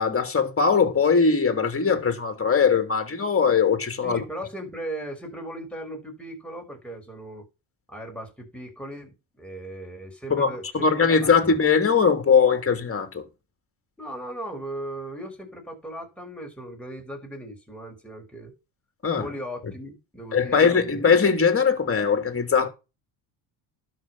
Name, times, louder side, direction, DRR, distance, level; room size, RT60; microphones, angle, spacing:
voice 1, 0.0-4.2 10.3-13.2 19.0-19.3 19.6-19.7 20.3-22.7, left 5 dB, 25° left, 3.1 m, -21 dB
voice 2, 4.0-7.5 7.9-11.5 14.0-18.5 19.1-21.1, right 1 dB, ahead, 5.4 m, -37 dB
11.5 x 6.6 x 5.7 m
supercardioid pair, 70°, 49 cm